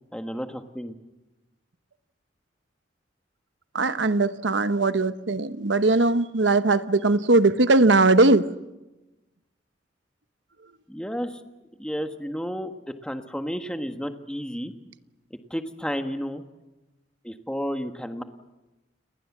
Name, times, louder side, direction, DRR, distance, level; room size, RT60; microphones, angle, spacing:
voice 1, 0.1-0.9 10.9-11.4 11.8-12.7 13.0-14.7 15.5-16.4 17.2-18.2, equal, 5° left, 1.5 m, -31 dB
voice 2, 3.7-8.4, right 2 dB, 75° right, 1.0 m, -20 dB
29.5 x 20.5 x 7.4 m
head